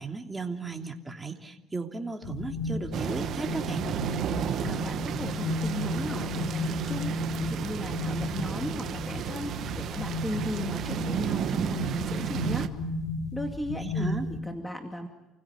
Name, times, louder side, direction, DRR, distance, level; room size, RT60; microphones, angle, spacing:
voice 1, 0.0-3.8 13.8-14.3, right 3 dB, 15° right, 3 dB, 2.9 m, -36 dB
sound 1, 2.2-14.4, left 2 dB, 75° left, 4.1 m, -34 dB
sound 2, 2.9-12.7, right 9 dB, 60° right, 1.2 m, -33 dB
voice 2, 4.5-12.7 13.3-14.2 14.4-15.1, left 1 dB, 5° left, 4 dB, 2.4 m, -37 dB
29.0 x 16.5 x 9.7 m, 1.0 s
cardioid pair, 95°, 0 cm